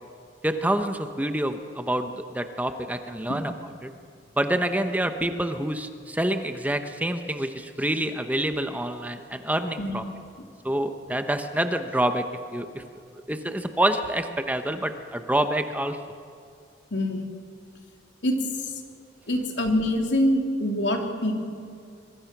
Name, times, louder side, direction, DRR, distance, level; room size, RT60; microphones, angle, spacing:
voice 1, 0.4-3.5 3.8-3.9 4.4-10.0 10.6-12.2 12.5-12.8 13.3-16.0, right 1 dB, 10° right, 7 dB, 1.0 m, -27 dB
voice 2, 16.9-17.2 18.2-18.8 19.3-21.3, left 1 dB, 75° left, 3 dB, 3.1 m, -25 dB
25.0 x 23.0 x 6.1 m, 2.3 s
head